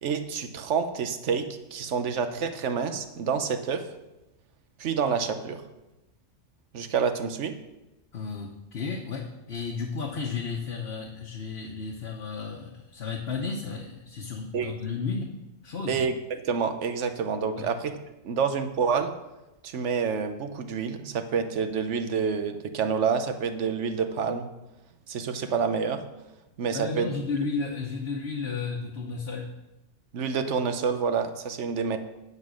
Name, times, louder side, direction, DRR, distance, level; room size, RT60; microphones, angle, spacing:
voice 1, 0.0-3.9 4.8-5.6 6.7-7.6 14.5-14.7 15.9-18.0 18.2-19.1 19.6-24.5 25.1-26.0 26.6-27.1 30.1-32.0, right 6 dB, 85° right, 9 dB, 1.1 m, -28 dB
voice 2, 8.1-15.3 15.6-16.0 17.6-17.7 26.7-29.5, left 5 dB, 60° left, -1 dB, 1.2 m, -33 dB
9.7 x 5.4 x 6.2 m, 0.98 s
omnidirectional pair, 1.2 m